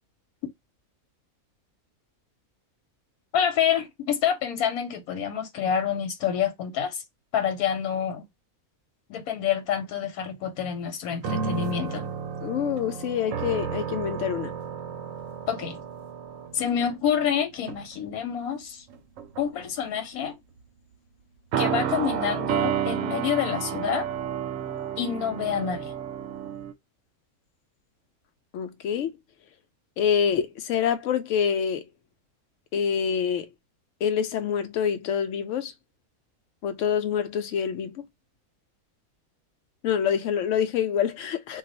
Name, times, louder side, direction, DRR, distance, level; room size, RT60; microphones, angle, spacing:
voice 1, 3.3-7.0 7.3-8.2 9.1-12.1 15.5-15.8 16.5-18.8 19.4-20.4 21.6-24.1 25.0-25.9, left 8 dB, 85° left, 1.2 m, -27 dB
sound 1, 11.2-17.3 17.7-18.0 18.9-19.7 21.5-26.7, right 8 dB, 70° right, 0.9 m, -31 dB
voice 2, 12.4-14.5 28.5-29.1 30.0-31.8 32.7-33.5 34.0-35.7 36.6-38.0 39.8-41.6, left 8 dB, 65° left, 0.8 m, -26 dB
2.4 x 2.3 x 3.8 m
omnidirectional pair, 1.5 m